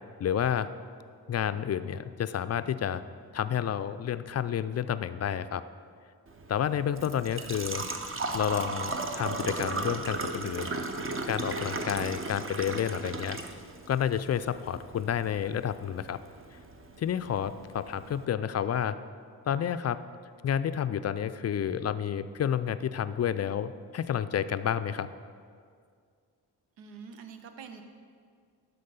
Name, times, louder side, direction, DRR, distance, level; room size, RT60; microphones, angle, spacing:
voice 1, 0.2-0.7 1.3-3.0 3.3-5.6 6.5-7.8 8.3-10.7 11.3-13.4 13.9-16.2 17.0-19.0 19.5-20.0 20.4-25.1, left 9 dB, 40° left, 13 dB, 0.4 m, -30 dB
Engine / Trickle dribble / Fill (with liquid), 6.3-18.2, right 3 dB, 30° right, 0.8 m, -36 dB
voice 2, 26.8-27.8, right 6 dB, 90° right, 7 dB, 0.7 m, -45 dB
11.5 x 4.0 x 5.5 m, 2.1 s
supercardioid pair, 40°, 44 cm